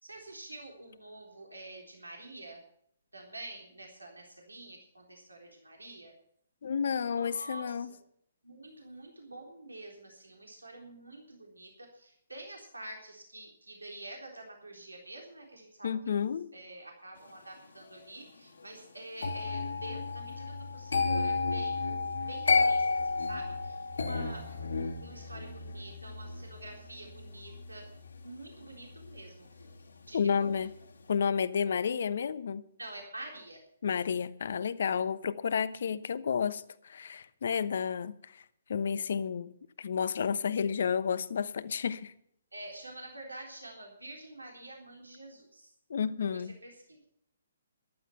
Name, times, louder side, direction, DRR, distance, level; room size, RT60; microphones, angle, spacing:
voice 1, 0.0-2.6 3.1-6.2 7.1-8.0 8.4-16.2 16.5-27.9 28.2-30.6 32.8-33.6 42.5-45.7 46.3-47.1, right 2 dB, 90° right, 3.7 m, -47 dB
voice 2, 6.6-7.9 15.8-16.5 30.1-30.7 31.1-32.6 33.8-38.4 38.7-42.1 45.9-46.6, left 7 dB, 60° left, 1.0 m, -31 dB
sound 1, 19.2-30.2 30.5-30.8, left 4 dB, 75° left, 2.7 m, -33 dB
14.5 x 12.0 x 5.7 m
figure-of-eight pair, 130°, 0 cm